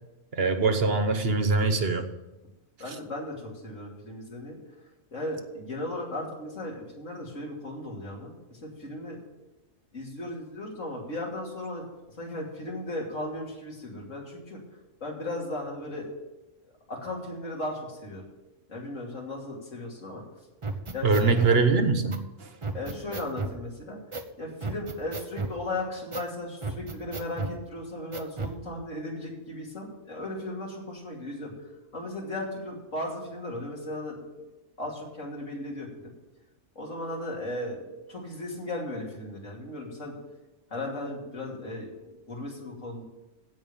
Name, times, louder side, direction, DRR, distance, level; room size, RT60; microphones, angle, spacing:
voice 1, 0.3-2.1 2.9-3.0 21.0-22.5, right 4 dB, 55° right, 7 dB, 1.2 m, -23 dB
voice 2, 2.8-4.6 5.1-9.2 9.9-11.9 12.2-14.6 15.0-16.1 16.9-18.2 18.7-20.2 20.9-21.4 22.7-24.0 24.4-31.5 31.9-34.2 34.8-36.1 36.7-37.8 38.1-40.1 40.7-41.9 42.3-43.0, left 1 dB, 85° left, -2 dB, 3.2 m, -36 dB
sound 1, 20.6-21.6 22.1-22.2 22.6-23.6 24.1-24.3 24.6-25.6 26.1-26.3 26.6-27.6 28.1-28.6, right 3 dB, 30° right, 0.8 m, -34 dB
15.5 x 5.4 x 7.1 m, 1.0 s
omnidirectional pair, 1.3 m